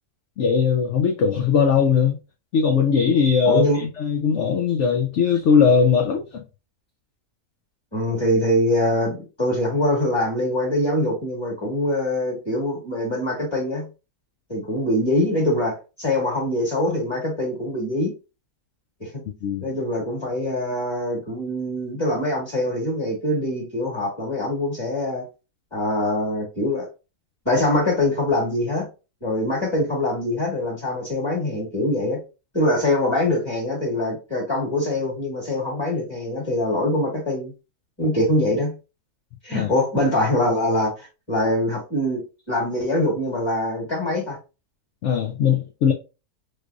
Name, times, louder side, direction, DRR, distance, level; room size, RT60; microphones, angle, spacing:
voice 1, 0.4-2.2 2.5-6.4 19.4-19.7 39.5-39.7 45.0-45.9, left 6 dB, 70° left, 0.7 m, -19 dB
voice 2, 3.4-3.8 7.9-13.9 14.5-18.1 19.0-19.2 19.6-25.2 25.7-26.9 27.4-28.9 29.2-32.2 32.5-37.5 38.0-38.7 39.4-42.2 42.5-44.4, left 1 dB, 20° left, 1.6 m, -23 dB
3.4 x 3.2 x 2.5 m
omnidirectional pair, 1.6 m